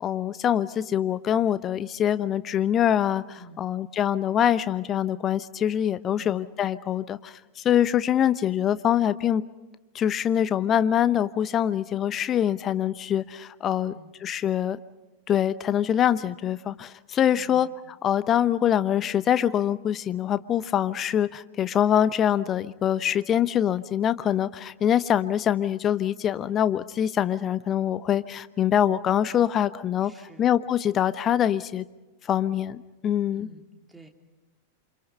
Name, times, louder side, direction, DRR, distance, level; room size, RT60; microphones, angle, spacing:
voice 1, 0.0-9.4 9.9-13.9 14.2-14.8 15.3-17.7 18.0-30.1 30.4-31.8 32.3-33.5, left 10 dB, 30° left, 15 dB, 0.9 m, -24 dB
voice 2, 13.7-14.1 17.3-17.7 30.0-30.5 33.3-34.1, equal, 5° right, 3 dB, 2.9 m, -49 dB
28.5 x 26.0 x 5.5 m, 1.1 s
figure-of-eight pair, 90°, 0 cm